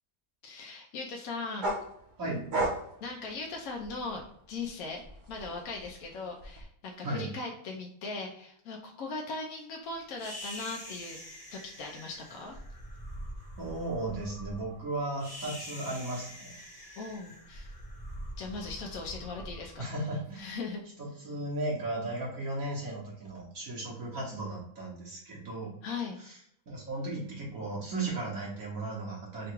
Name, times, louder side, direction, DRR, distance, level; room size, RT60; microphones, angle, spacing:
voice 1, 0.4-1.7 3.0-4.2 4.5-5.0 5.3-11.2 11.5-12.6 17.0-17.7 18.4-19.7 20.4-20.8 25.8-26.2, left 3 dB, 70° left, 0 dB, 1.1 m, -39 dB
sound 1, 1.6-4.2 4.6-6.6, right 1 dB, 40° right, 0.8 m, -35 dB
sound 2, 10.2-20.5, equal, 20° left, 0.8 m, -44 dB
voice 2, 13.6-16.5 19.8-20.5 21.0-25.7 26.2-26.4 26.7-29.5, right 2 dB, 70° right, -4 dB, 1.6 m, -35 dB
3.8 x 2.3 x 4.4 m, 0.71 s
omnidirectional pair, 1.6 m